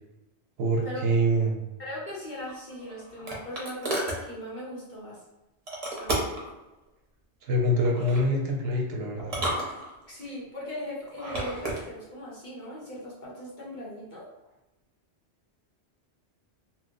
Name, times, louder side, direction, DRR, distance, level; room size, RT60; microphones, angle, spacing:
voice 1, 0.6-1.6 7.4-9.3, equal, 70° right, 0 dB, 0.8 m, -25 dB
voice 2, 1.8-5.2 6.0-6.4 10.1-14.3, left 1 dB, 45° left, -6 dB, 1.0 m, -39 dB
sound 1, 2.5-4.2 5.7-6.5 7.8-8.3 9.2-10.2 11.1-11.8, right 1 dB, 40° right, 0.7 m, -32 dB
2.8 x 2.0 x 3.6 m, 1.0 s
omnidirectional pair, 1.2 m